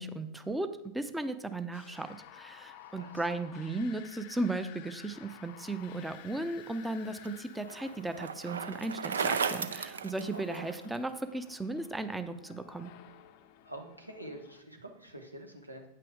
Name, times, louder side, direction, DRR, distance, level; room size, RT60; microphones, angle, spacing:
voice 1, 0.0-12.9, right 2 dB, 5° right, 10 dB, 0.6 m, -36 dB
sound 1, 1.7-14.6, left 12 dB, 45° left, 0.5 m, -54 dB
voice 2, 2.7-3.3 10.3-10.6 13.6-15.9, right 1 dB, 90° right, 3 dB, 1.1 m, -47 dB
Bicycle, 6.5-11.0, right 6 dB, 70° right, 0.4 m, -35 dB
9.1 x 5.9 x 4.7 m, 0.85 s
figure-of-eight pair, 90°, 0 cm